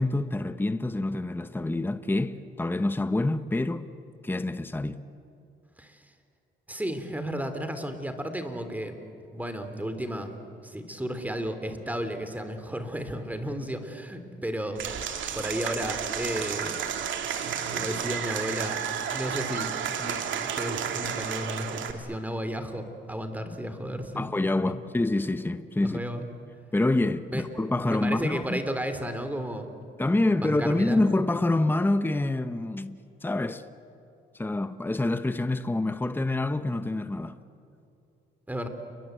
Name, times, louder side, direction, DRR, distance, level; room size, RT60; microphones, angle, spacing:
voice 1, 0.0-3.9 4.2-5.0 24.2-26.0 26.7-28.6 30.0-33.6 34.3-37.4, left 2 dB, 10° left, 1.0 m, -27 dB
voice 2, 6.7-9.0 9.3-10.3 10.6-14.8 15.3-16.8 17.6-18.8 19.1-19.7 20.0-24.3 24.5-24.8 25.8-26.2 27.3-27.4 27.7-29.7 30.4-31.0 38.5-38.7, equal, 10° right, 3.2 m, -33 dB
Applause / Crowd, 14.8-21.9, right 8 dB, 75° right, 2.5 m, -32 dB
29.5 x 22.5 x 8.1 m
cardioid pair, 90°, 20 cm